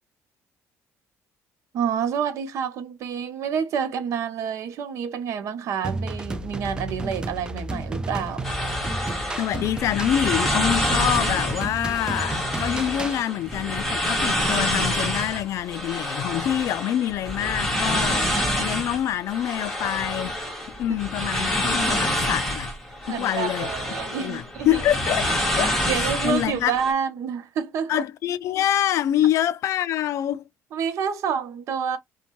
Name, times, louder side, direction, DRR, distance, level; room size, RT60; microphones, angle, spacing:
voice 1, 1.7-8.5 23.1-24.8 25.9-28.0 30.7-32.0, right 7 dB, 65° right, 0.6 m, -28 dB
sound 1, 5.8-13.2, right 2 dB, 15° right, 0.4 m, -32 dB
sound 2, 8.4-26.9, equal, 5° left, 1.2 m, -27 dB
voice 2, 9.4-20.4 20.8-22.7 23.1-23.7 24.1-26.7 27.9-30.4, left 11 dB, 65° left, 0.4 m, -26 dB
2.6 x 2.2 x 2.9 m
cardioid pair, 115°, 6 cm